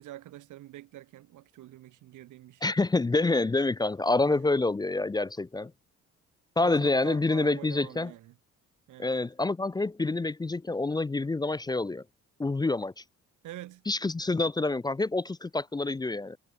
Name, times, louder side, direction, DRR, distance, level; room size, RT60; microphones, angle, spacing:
voice 1, 0.0-2.7 4.2-4.4 6.6-8.4 8.9-9.1 13.4-13.8, right 15 dB, 85° right, 2.0 m, -46 dB
voice 2, 2.6-5.7 6.6-8.1 9.0-12.0 12.4-13.0 13.9-16.4, left 2 dB, 15° left, 0.5 m, -27 dB
cardioid pair, 90°, 30 cm